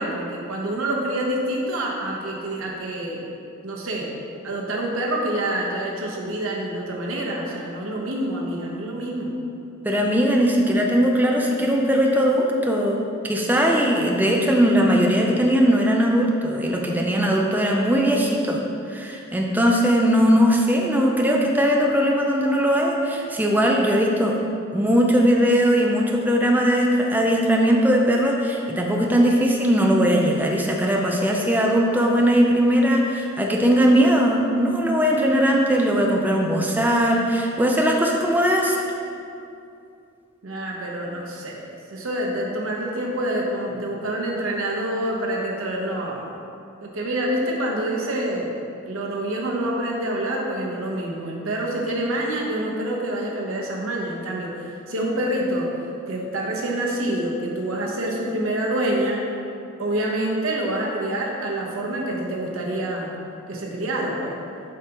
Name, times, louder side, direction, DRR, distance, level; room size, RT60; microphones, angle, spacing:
voice 1, 0.0-3.2 3.6-4.1 4.4-9.3 40.4-46.3 46.8-48.5 48.9-59.3 59.8-63.2 63.5-64.4, right 1 dB, 85° right, -1 dB, 1.0 m, -27 dB
voice 2, 9.8-18.6 18.9-24.4 24.7-38.8, equal, 10° right, 0 dB, 0.4 m, -19 dB
7.3 x 5.1 x 2.9 m, 2.6 s
head